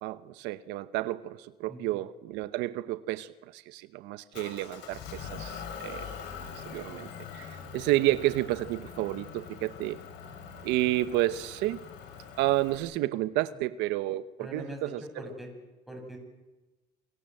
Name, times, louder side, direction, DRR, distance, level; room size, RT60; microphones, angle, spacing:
voice 1, 0.0-6.1 6.6-7.1 7.3-10.0 10.6-11.8 12.4-15.0, right 16 dB, 90° right, 14 dB, 1.0 m, -30 dB
voice 2, 1.7-2.0 14.4-15.5 15.9-16.2, equal, ahead, 2 dB, 7.8 m, -42 dB
Motor vehicle (road) / Engine, 4.3-12.8, left 7 dB, 80° left, 6.4 m, -43 dB
28.0 x 23.5 x 7.9 m, 1.1 s
cardioid pair, 125°, 18 cm